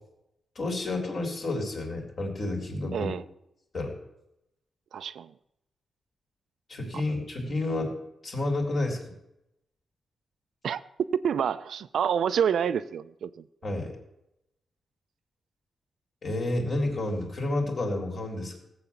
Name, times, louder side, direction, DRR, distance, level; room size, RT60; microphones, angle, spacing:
voice 1, 0.6-3.1 3.7-4.0 6.7-7.9 8.2-9.0 13.6-13.9 16.2-18.6, left 2 dB, 40° left, 1 dB, 3.7 m, -30 dB
voice 2, 2.9-3.2 4.9-5.3 10.6-13.4, right 8 dB, 70° right, 12 dB, 0.6 m, -28 dB
18.0 x 7.8 x 7.2 m, 0.83 s
wide cardioid pair, 160°, 0 cm